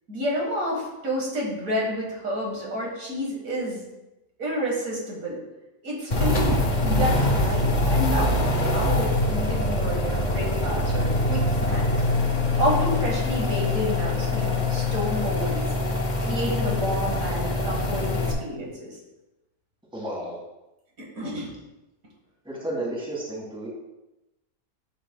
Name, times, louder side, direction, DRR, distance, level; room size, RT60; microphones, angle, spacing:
voice 1, 0.1-3.9 4.4-5.4 5.8-11.8 12.6-15.7 16.2-19.0 21.0-21.5, equal, 70° right, -3 dB, 2.2 m, -29 dB
sound 1, 6.1-18.3, left 2 dB, 35° left, 0.9 m, -24 dB
voice 2, 19.9-20.4 22.5-23.7, right 1 dB, 5° right, -4 dB, 1.7 m, -32 dB
10.0 x 5.7 x 2.3 m, 0.96 s
omnidirectional pair, 1.5 m